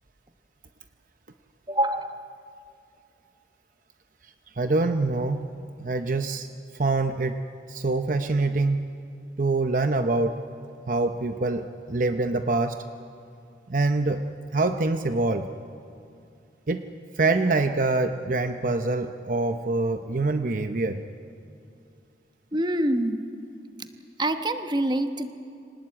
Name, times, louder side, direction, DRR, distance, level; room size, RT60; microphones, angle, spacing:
voice 1, 1.7-2.3 22.5-23.2 24.2-25.3, right 1 dB, 25° right, 8 dB, 1.0 m, -26 dB
voice 2, 4.5-5.5 5.8-6.5 6.7-7.4 7.7-8.9 9.4-10.4 10.9-12.8 13.7-14.3 14.5-15.5 16.7-16.9 17.2-21.0, right 3 dB, 45° right, 8 dB, 0.7 m, -25 dB
24.5 x 19.0 x 8.6 m, 2.5 s
head